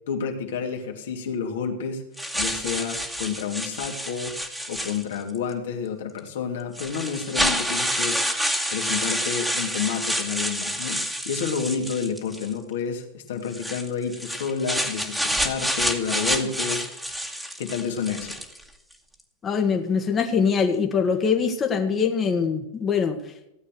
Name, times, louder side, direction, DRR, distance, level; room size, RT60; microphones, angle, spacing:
voice 1, 0.1-2.0 2.3-4.4 4.7-8.2 8.7-17.1 17.6-18.4, left 6 dB, 70° left, 2 dB, 2.7 m, -30 dB
sound 1, 2.2-5.4 6.2-6.3 6.7-12.5 13.5-18.6, equal, 5° right, 2.3 m, -28 dB
voice 2, 19.4-23.2, left 6 dB, 25° left, 3 dB, 1.8 m, -23 dB
16.5 x 8.7 x 6.3 m, 0.87 s
hypercardioid pair, 105°, 0 cm